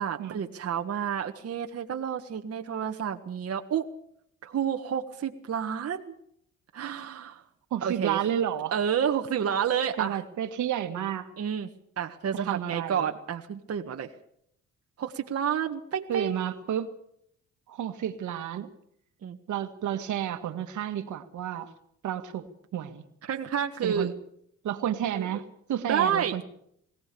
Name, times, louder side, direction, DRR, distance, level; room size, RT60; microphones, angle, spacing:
voice 1, 0.0-3.9 4.4-6.1 6.7-7.4 7.8-8.2 8.7-10.2 11.4-11.7 12.0-14.1 15.0-16.5 19.2-19.4 23.3-24.1 25.1-25.3 25.9-26.4, right 8 dB, 50° right, 4 dB, 1.6 m, -30 dB
voice 2, 7.7-8.7 10.0-11.3 12.3-13.1 16.1-16.9 17.7-18.7 19.5-21.7 22.0-22.5 22.7-23.0 23.8-24.1 24.6-26.4, right 10 dB, 75° right, 8 dB, 2.0 m, -31 dB
22.5 x 17.5 x 7.0 m, 0.71 s
cardioid pair, 90°, 30 cm